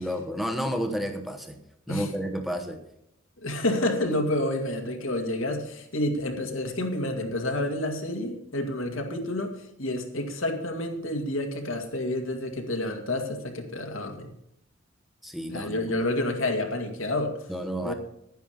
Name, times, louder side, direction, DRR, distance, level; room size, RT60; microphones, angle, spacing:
voice 1, 0.0-1.6 1.9-2.8 15.2-15.7 17.5-17.9, equal, ahead, 5 dB, 1.0 m, -31 dB
voice 2, 3.4-14.3 15.5-17.3 17.8-17.9, left 1 dB, 75° left, 4 dB, 2.1 m, -29 dB
11.0 x 10.5 x 5.0 m, 0.78 s
head